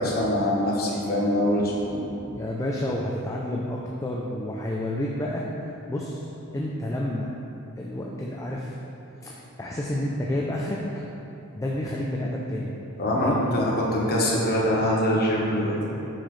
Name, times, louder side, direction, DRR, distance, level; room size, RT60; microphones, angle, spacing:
voice 1, 0.0-2.0 13.0-15.9, left 1 dB, 45° left, -4 dB, 1.2 m, -24 dB
voice 2, 2.3-5.4 5.9-7.3 7.8-8.7 9.2-10.8 11.6-12.7 13.2-13.6, left 1 dB, 15° left, -3 dB, 0.4 m, -30 dB
6.4 x 6.0 x 3.1 m, 2.8 s
head